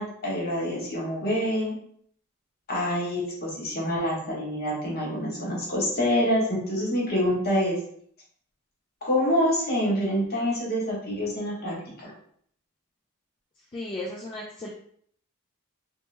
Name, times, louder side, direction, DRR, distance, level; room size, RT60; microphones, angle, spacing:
voice 1, 0.0-1.8 2.7-7.7 9.0-11.7 12.0-12.1, equal, 45° left, -4 dB, 1.1 m, -26 dB
voice 2, 6.7-7.2 13.7-14.7, left 2 dB, 25° left, -4 dB, 0.3 m, -36 dB
3.0 x 2.1 x 3.2 m, 0.63 s
head